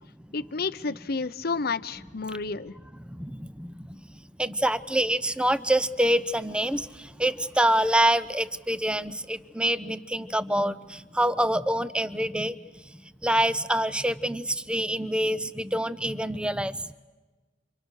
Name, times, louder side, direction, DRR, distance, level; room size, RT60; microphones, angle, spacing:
voice 1, 0.3-2.7, left 4 dB, 55° left, 14 dB, 0.8 m, -30 dB
voice 2, 3.0-16.9, right 1 dB, 5° right, 15 dB, 0.8 m, -26 dB
29.0 x 27.5 x 6.5 m, 1.3 s
head